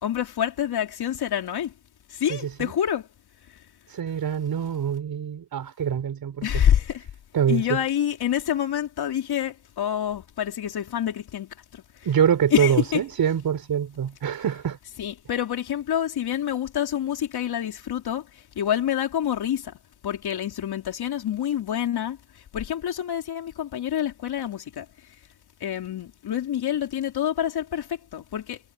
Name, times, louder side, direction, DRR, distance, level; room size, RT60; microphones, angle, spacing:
voice 1, 0.0-1.7 2.1-3.1 6.4-7.1 7.5-11.8 12.5-13.0 15.0-18.3 18.6-19.7 20.0-22.2 22.5-24.9 25.6-28.6, left 10 dB, 65° left, 4.1 m, -27 dB
voice 2, 2.3-2.7 3.9-6.6 7.3-7.8 12.0-14.8, right 8 dB, 55° right, 4.4 m, -25 dB
cardioid pair, 95°, 41 cm